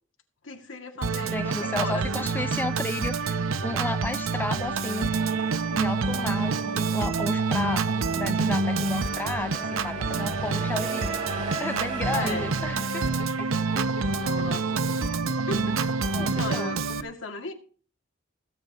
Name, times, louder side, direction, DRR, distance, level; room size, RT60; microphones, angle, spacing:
voice 1, 0.4-2.1 12.1-12.5 14.1-15.1 15.5-17.5, left 3 dB, 70° left, 2.1 m, -36 dB
Organ, 1.0-17.0, right 4 dB, 85° right, 0.7 m, -27 dB
voice 2, 1.2-3.4 3.6-5.1 5.7-7.9 8.1-11.1 11.6-13.0 13.4-13.5 13.7-13.9 16.1-16.7, left 2 dB, 10° left, 0.5 m, -33 dB
Truck, 4.3-13.3, right 1 dB, 40° right, 6.4 m, -40 dB
16.5 x 7.9 x 4.1 m
head